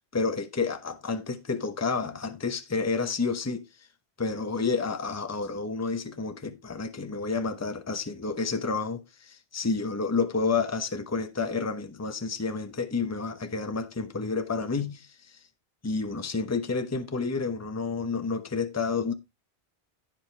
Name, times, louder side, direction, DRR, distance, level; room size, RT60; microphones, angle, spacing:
voice 1, 0.1-3.7 4.2-15.4 15.8-19.1, left 4 dB, 15° left, 0.8 m, -30 dB
15.5 x 5.2 x 3.3 m
omnidirectional pair, 1.1 m